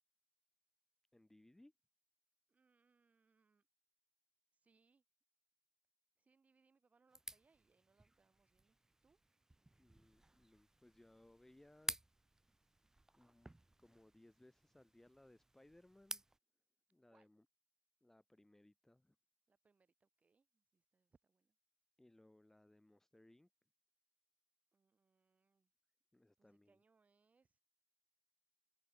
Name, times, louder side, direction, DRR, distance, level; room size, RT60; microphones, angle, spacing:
voice 1, 1.1-1.7 9.8-12.0 13.2-16.2 16.9-17.5 18.0-19.2 22.0-23.5 26.1-26.8, left 1 dB, 10° left, 2.7 m, -66 dB
voice 2, 2.5-3.7 4.5-5.0 6.2-8.8 9.0-9.2 17.1-17.3 19.5-21.6 24.7-25.7 26.4-27.6, right 4 dB, 35° right, 6.0 m, -77 dB
sound 1, 7.1-16.4, right 2 dB, 10° right, 0.4 m, -53 dB
cardioid pair, 120°, 4 cm